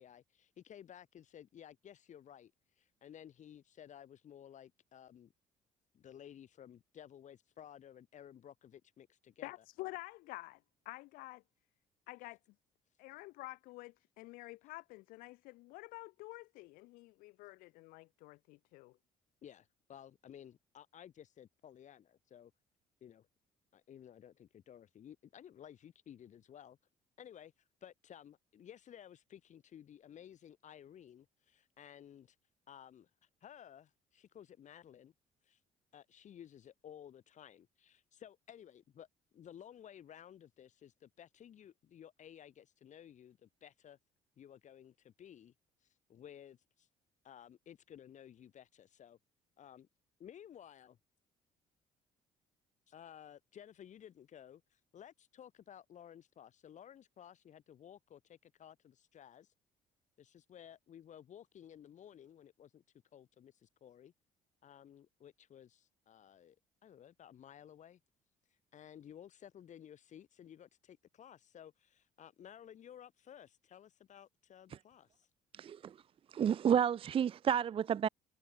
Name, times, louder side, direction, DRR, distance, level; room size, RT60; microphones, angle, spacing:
voice 1, 0.0-5.3 5.9-9.5 19.4-22.5 23.0-23.3 23.7-26.8 27.2-27.5 27.8-32.4 32.7-35.1 35.4-35.6 35.9-39.1 39.3-44.0 44.4-45.5 45.8-46.9 47.2-49.2 49.6-49.9 50.2-51.0 52.9-59.5 60.2-62.8 63.1-64.1 64.6-66.6 66.8-68.0 68.5-75.3, left 9 dB, 60° left, 3.8 m, -55 dB
voice 2, 9.4-11.4 12.1-12.4 13.0-19.0, left 21 dB, 80° left, 0.9 m, -49 dB
voice 3, 75.6-75.9 76.3-78.1, right 8 dB, 40° right, 0.4 m, -30 dB
supercardioid pair, 70°, 14 cm